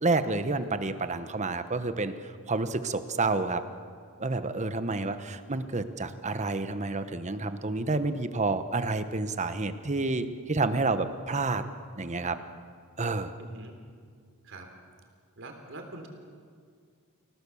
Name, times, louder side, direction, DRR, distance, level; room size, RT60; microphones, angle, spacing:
voice 1, 0.0-2.1 2.5-3.6 4.2-11.6 12.0-12.4 13.0-13.3, right 3 dB, 30° right, 10 dB, 1.1 m, -29 dB
voice 2, 4.9-5.2 11.3-11.4 13.4-13.8 14.4-14.7 15.4-16.1, right 2 dB, 60° right, 4 dB, 3.6 m, -45 dB
29.0 x 17.0 x 7.2 m, 2.1 s
head